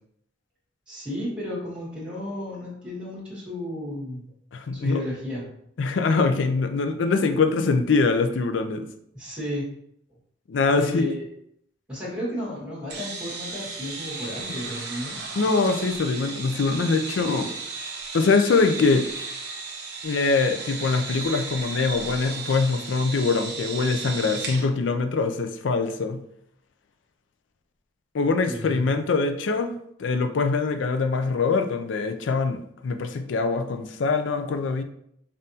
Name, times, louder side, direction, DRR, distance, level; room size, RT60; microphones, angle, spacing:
voice 1, 0.9-4.2 4.7-5.4 9.1-9.7 10.7-11.2 11.9-15.2 28.4-28.8, left 1 dB, 5° right, -7 dB, 1.6 m, -33 dB
voice 2, 4.5-5.0 5.8-8.9 10.5-11.1 15.4-17.5 18.1-19.1 20.0-26.2 28.1-34.8, left 4 dB, 80° left, 8 dB, 0.4 m, -23 dB
sound 1, 12.9-24.6, right 4 dB, 60° right, 0.9 m, -35 dB
5.4 x 2.6 x 2.7 m, 0.72 s
head